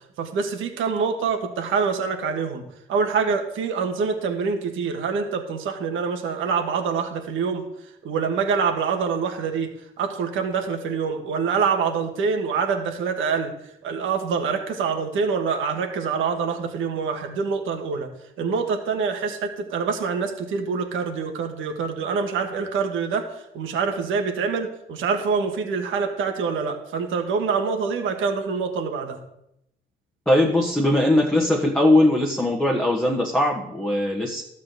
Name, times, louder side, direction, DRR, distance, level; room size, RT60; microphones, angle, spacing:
voice 1, 0.2-2.6 2.9-7.6 8.0-9.7 10.0-13.5 13.8-18.1 18.4-29.2, right 5 dB, 80° right, 4 dB, 1.5 m, -25 dB
voice 2, 30.3-34.4, left 1 dB, 5° left, -2 dB, 1.4 m, -20 dB
12.5 x 4.2 x 8.0 m, 0.80 s
cardioid pair, 90°, 20 cm